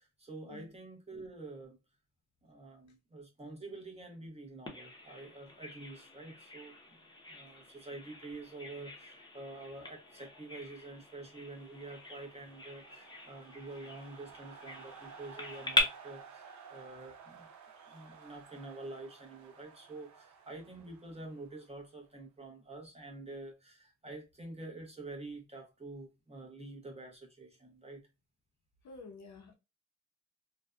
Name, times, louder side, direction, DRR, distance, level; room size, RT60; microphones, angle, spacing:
voice 1, 0.0-1.8 2.4-7.0 7.3-17.5 17.9-28.1, right 2 dB, 20° right, 0.8 m, -47 dB
Bird vocalization bird call bird song, 4.7-15.8, left 1 dB, 15° left, 0.7 m, -41 dB
sound 1, 10.1-22.1, right 6 dB, 75° right, 0.7 m, -55 dB
voice 2, 28.8-29.6, left 4 dB, 70° left, 0.8 m, -50 dB
2.6 x 2.2 x 2.4 m
wide cardioid pair, 110°, 29 cm